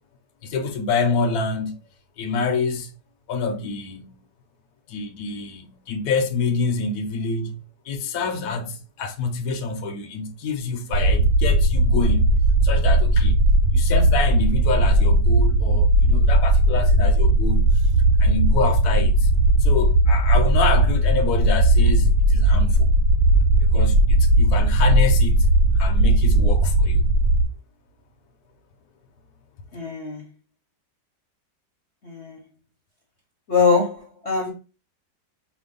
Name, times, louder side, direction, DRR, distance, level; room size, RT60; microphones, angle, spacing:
voice 1, 0.4-1.8 2.2-2.9 3.3-4.2 4.9-7.6 7.8-13.4 13.7-17.8 18.2-19.3 19.6-23.0 23.6-25.5 25.7-27.1, left 4 dB, 65° left, 1.1 m, -27 dB
sound 1, 10.9-27.4, right 1 dB, 75° right, 1.4 m, -17 dB
voice 2, 29.7-30.2 32.0-32.4 33.5-34.5, left 5 dB, 50° left, 1.0 m, -22 dB
5.1 x 2.2 x 3.8 m
omnidirectional pair, 1.9 m